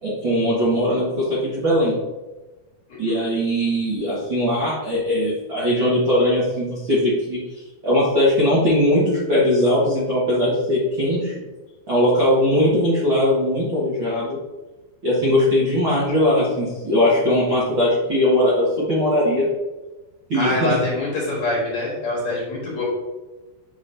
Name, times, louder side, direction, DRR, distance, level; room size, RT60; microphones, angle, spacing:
voice 1, 0.0-1.9 3.0-7.4 7.8-11.3 11.9-14.4 15.0-19.5 20.3-20.8, left 1 dB, 50° right, -9 dB, 1.6 m, -20 dB
voice 2, 2.9-3.2 20.3-22.9, left 1 dB, 60° left, -4 dB, 2.3 m, -25 dB
8.1 x 5.3 x 2.7 m, 1.2 s
omnidirectional pair, 4.3 m